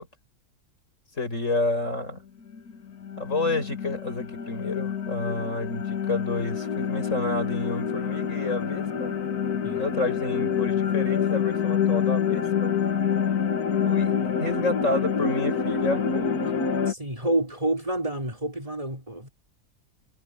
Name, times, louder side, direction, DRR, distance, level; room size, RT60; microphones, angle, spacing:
voice 1, 1.1-2.2 3.2-9.2 9.7-12.8 13.8-16.5, left 2 dB, 55° left, 6.9 m, -30 dB
sound 1, 2.5-16.9, left 7 dB, 75° left, 2.0 m, -27 dB
voice 2, 16.9-19.3, right 1 dB, 20° right, 5.3 m, -28 dB
omnidirectional pair, 1.6 m